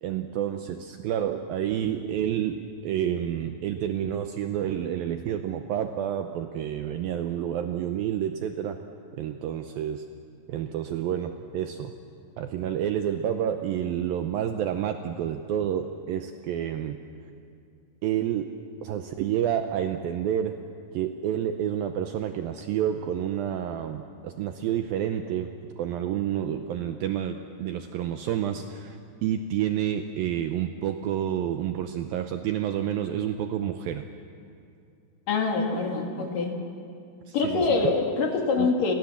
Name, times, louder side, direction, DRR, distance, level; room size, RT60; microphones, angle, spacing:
voice 1, 0.0-8.8 9.2-10.0 10.5-11.9 12.4-17.0 18.0-18.5 18.8-20.6 20.9-25.5 25.8-34.0 37.3-37.9 38.6-38.7, right 10 dB, 75° right, 7 dB, 2.2 m, -29 dB
voice 2, 35.3-36.6 37.3-38.9, left 4 dB, 55° left, 2 dB, 3.5 m, -25 dB
29.5 x 20.0 x 7.2 m, 2.5 s
omnidirectional pair, 4.9 m